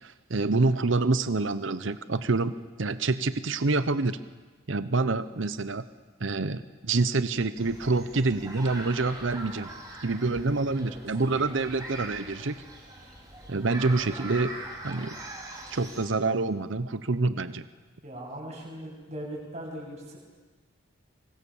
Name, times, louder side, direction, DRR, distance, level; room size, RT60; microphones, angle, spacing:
voice 1, 0.0-2.5 2.8-4.2 4.7-5.8 6.2-9.7 10.0-12.6 13.5-14.5 14.8-15.2 15.7-17.6, right 3 dB, 70° right, 13 dB, 0.8 m, -27 dB
sound 1, 7.6-16.1, right 2 dB, 20° right, 5.2 m, -42 dB
voice 2, 18.0-20.2, right 1 dB, 35° right, -2 dB, 7.9 m, -39 dB
24.5 x 24.5 x 7.2 m, 1.4 s
head